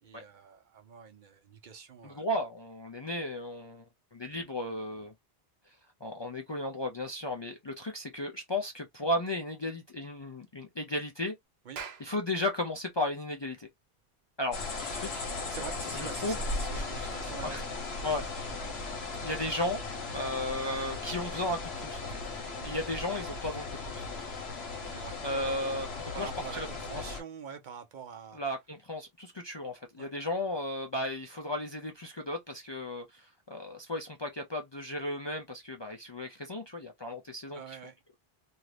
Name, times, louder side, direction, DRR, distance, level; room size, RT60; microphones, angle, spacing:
voice 1, 0.0-2.2 11.7-11.8 15.5-18.0 22.5-22.8 24.8-25.3 26.1-28.4 30.0-30.1 37.5-38.0, right 6 dB, 60° right, 0.6 m, -46 dB
voice 2, 2.0-3.8 4.1-5.1 6.0-11.3 12.0-13.7 14.4-15.2 15.9-16.4 17.4-17.6 18.0-18.2 19.2-19.8 20.1-22.2 22.6-24.1 25.2-25.9 26.2-26.7 28.3-37.8, left 1 dB, 40° left, 0.4 m, -35 dB
Clapping, 11.5-16.4, right 6 dB, 85° right, 1.0 m, -49 dB
sound 1, 14.5-27.2, left 3 dB, 85° left, 1.2 m, -37 dB
2.7 x 2.4 x 3.2 m
omnidirectional pair, 1.0 m